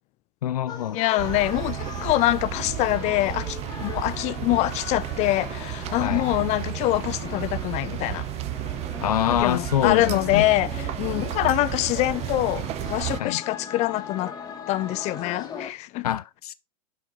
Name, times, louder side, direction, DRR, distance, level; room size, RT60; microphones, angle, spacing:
voice 1, 0.4-1.0 6.0-6.5 9.0-10.4 13.2-13.4 16.0-16.5, left 11 dB, 85° left, 0.5 m, -25 dB
sound 1, 0.7-15.7, left 6 dB, 20° left, 1.3 m, -39 dB
voice 2, 0.9-8.3 9.3-14.3 14.7-16.1, left 17 dB, 35° left, 0.5 m, -25 dB
sound 2, 1.2-13.2, right 15 dB, 35° right, 0.7 m, -32 dB
6.2 x 5.3 x 3.8 m
hypercardioid pair, 115°, 19 cm